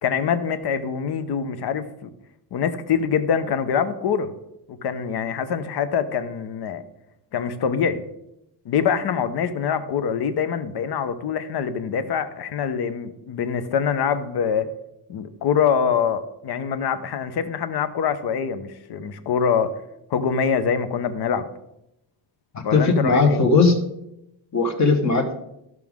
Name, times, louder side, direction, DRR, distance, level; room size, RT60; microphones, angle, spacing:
voice 1, 0.0-2.1 2.5-4.3 4.7-6.8 7.3-8.0 8.6-14.7 15.1-19.7 20.1-21.5 22.6-23.4, left 7 dB, 50° left, 11 dB, 0.9 m, -24 dB
voice 2, 22.5-23.8 24.5-25.3, left 3 dB, 35° left, 2 dB, 1.3 m, -18 dB
13.5 x 6.2 x 3.6 m, 0.84 s
cardioid pair, 155°, 49 cm